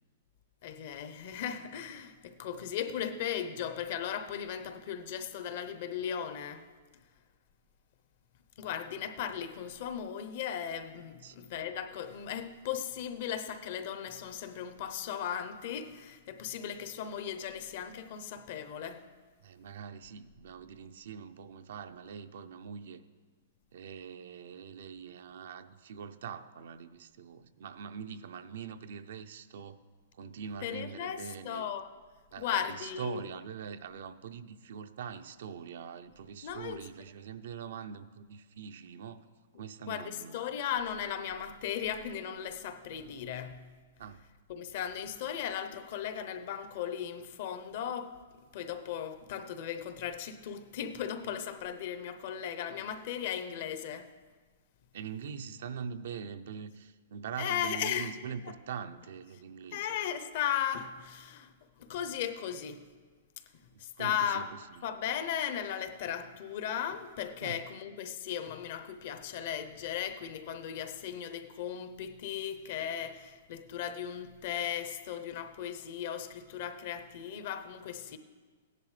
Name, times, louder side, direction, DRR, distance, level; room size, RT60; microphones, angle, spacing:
voice 1, 0.6-6.7 8.6-19.0 30.6-31.9 32.4-33.2 36.4-36.9 39.9-43.7 44.5-48.2 48.5-54.1 57.4-58.1 58.5-58.6 59.7-62.8 63.8-64.5 64.8-78.2, left 9 dB, 55° left, 0.7 m, -37 dB
voice 2, 19.4-23.0 23.7-29.8 30.2-31.7 32.3-39.3 39.6-40.4 44.0-44.2 54.9-59.9 63.7-64.4 64.7-64.8 67.4-67.6, right 7 dB, 70° right, 0.5 m, -43 dB
15.5 x 10.5 x 3.3 m
hypercardioid pair, 150°, 0 cm